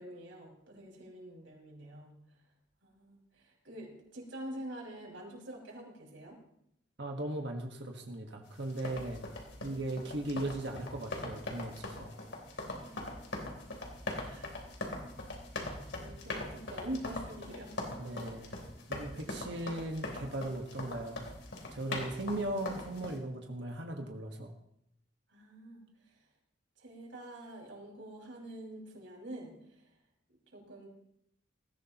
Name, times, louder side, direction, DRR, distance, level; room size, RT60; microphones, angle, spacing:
voice 1, 0.0-2.4 2.8-6.4 12.8-13.0 14.2-14.6 15.6-17.8 18.4-18.6 19.0-19.4 25.3-26.2 26.8-29.9 30.3-30.9, right 1 dB, 85° right, -2 dB, 5.5 m, -46 dB
voice 2, 7.0-9.2 9.6-12.1 18.0-18.5 18.9-21.2 21.7-24.5, right 1 dB, 65° right, 2 dB, 1.5 m, -38 dB
sound 1, 8.6-23.2, left 2 dB, 75° left, 3.4 m, -41 dB
19.5 x 16.0 x 3.0 m, 0.77 s
head